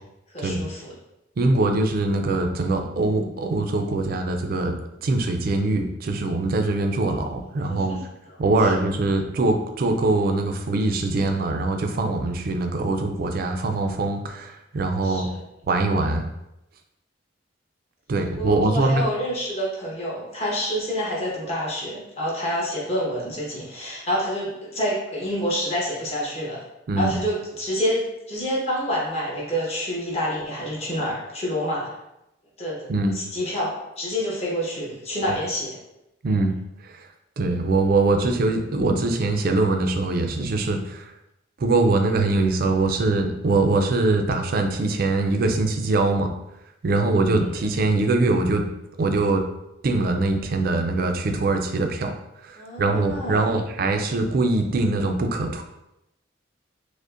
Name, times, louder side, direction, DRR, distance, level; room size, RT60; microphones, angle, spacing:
voice 1, 0.3-0.9 7.7-8.0 8.5-8.7 15.0-15.4 18.4-26.6 27.0-31.9 32.6-32.9 33.1-35.8 47.4-47.5 52.6-53.6, equal, 30° left, -5 dB, 1.0 m, -28 dB
voice 2, 1.4-4.7 5.0-7.9 8.4-15.3 15.7-16.2 18.1-19.1 26.9-27.2 32.9-33.1 36.2-36.5 36.8-37.1 37.4-41.1 41.6-46.3 46.8-48.6 49.0-49.4 49.8-52.1 52.4-55.6, right 2 dB, 50° right, 4 dB, 0.4 m, -22 dB
4.9 x 2.1 x 2.5 m, 0.88 s
head